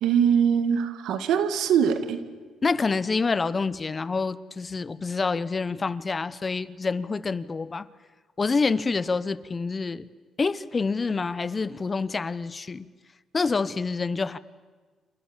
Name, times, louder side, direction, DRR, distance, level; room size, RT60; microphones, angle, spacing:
voice 1, 0.0-2.2, right 8 dB, 85° right, 10 dB, 2.0 m, -22 dB
voice 2, 2.6-7.9 8.4-10.1 10.4-12.9 13.3-14.4, left 4 dB, 30° left, 17 dB, 0.9 m, -27 dB
28.5 x 27.5 x 7.4 m, 1.4 s
cardioid pair, 90°, 0 cm